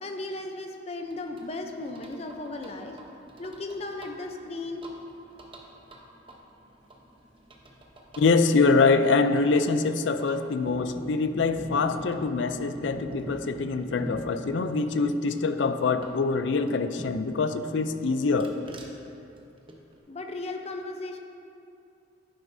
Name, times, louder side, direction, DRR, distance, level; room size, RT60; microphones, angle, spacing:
voice 1, 0.0-3.0 3.4-4.8 20.1-21.2, left 2 dB, 35° left, 4 dB, 0.6 m, -36 dB
sound 1, 1.1-17.4 17.8-20.0, right 1 dB, 30° right, 0.9 m, -45 dB
voice 2, 8.2-18.6, left 4 dB, 90° left, 10 dB, 0.5 m, -24 dB
11.0 x 9.7 x 2.7 m, 2.7 s
head